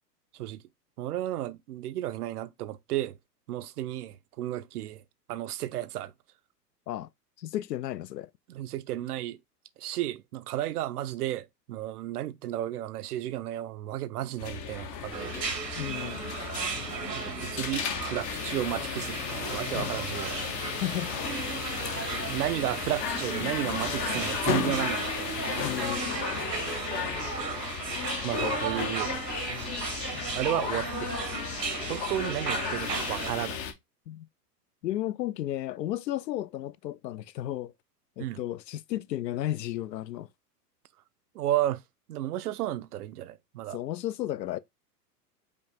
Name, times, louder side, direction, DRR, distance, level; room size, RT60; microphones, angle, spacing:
voice 1, 1.0-3.2 3.5-5.0 5.3-6.1 8.5-9.4 9.8-15.4 17.1-20.4 22.3-25.3 28.2-29.5 30.3-31.1 31.9-33.6 38.2-38.4 41.3-41.8 42.1-43.8, right 13 dB, 65° right, 0.6 m, -33 dB
voice 2, 7.4-8.3 15.8-16.2 20.8-21.1 25.6-26.1 30.1-30.7 34.1-34.3 34.8-37.7 38.2-40.3 43.7-44.6, left 13 dB, 80° left, 0.6 m, -33 dB
sound 1, 14.4-33.7, left 8 dB, 20° left, 0.4 m, -34 dB
sound 2, 15.1-33.3, right 5 dB, 90° right, 1.6 m, -35 dB
5.1 x 2.5 x 3.4 m
hypercardioid pair, 110°, 49 cm